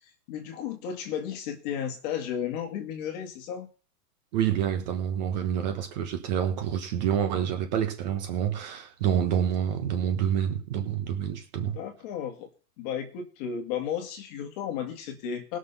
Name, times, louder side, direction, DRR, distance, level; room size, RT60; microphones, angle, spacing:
voice 1, 0.3-3.7 11.6-12.5 12.8-15.6, left 8 dB, 25° left, 1.9 m, -34 dB
voice 2, 4.3-11.8, right 9 dB, 25° right, 1.3 m, -28 dB
19.0 x 6.4 x 5.5 m
hypercardioid pair, 170°, 48 cm